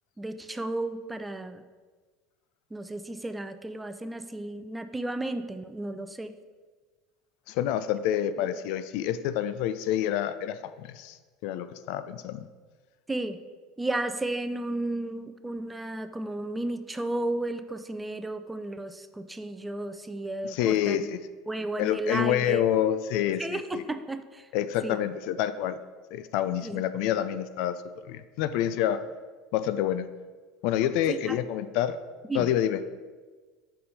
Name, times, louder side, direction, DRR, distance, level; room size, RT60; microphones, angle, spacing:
voice 1, 0.2-1.6 2.7-6.3 8.5-8.6 13.1-13.4 13.8-21.1 21.5-22.6 23.4-24.5 24.8-25.0 26.6-27.1 31.1-31.4 32.3-32.5, right 2 dB, 10° right, 10 dB, 0.4 m, -33 dB
voice 2, 7.5-12.5 20.4-21.2 21.8-23.8 24.5-25.8 26.1-27.8 28.0-29.0 29.5-30.1 30.6-32.0 32.3-32.8, left 11 dB, 65° left, 12 dB, 0.3 m, -28 dB
5.4 x 4.3 x 5.0 m, 1.4 s
hypercardioid pair, 95°, 0 cm